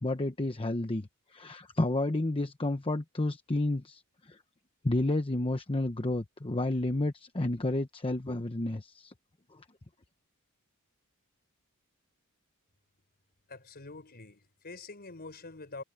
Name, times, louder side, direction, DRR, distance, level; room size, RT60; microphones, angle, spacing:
voice 1, 0.0-4.4 4.8-9.1 9.5-9.6, left 2 dB, 25° left, 0.9 m, -31 dB
voice 2, 13.5-15.8, left 3 dB, 45° left, 5.1 m, -46 dB
head